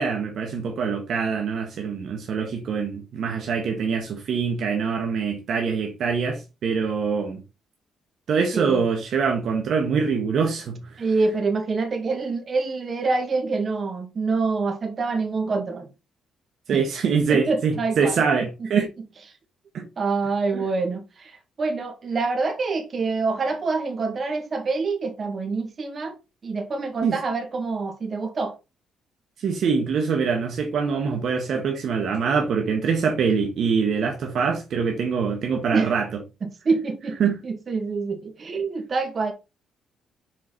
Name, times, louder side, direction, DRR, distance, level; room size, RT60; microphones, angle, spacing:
voice 1, 0.0-7.4 8.3-11.0 16.7-18.9 19.7-19.9 20.5-20.7 27.0-27.2 29.4-36.2 37.2-37.4, right 5 dB, 65° right, 1.5 m, -24 dB
voice 2, 8.5-8.9 11.0-15.9 16.7-16.8 17.3-18.7 20.0-26.2 26.4-28.6 35.7-36.0 36.4-39.3, right 4 dB, 45° right, 2.0 m, -26 dB
6.8 x 4.7 x 4.0 m
cardioid pair, 90°, 0 cm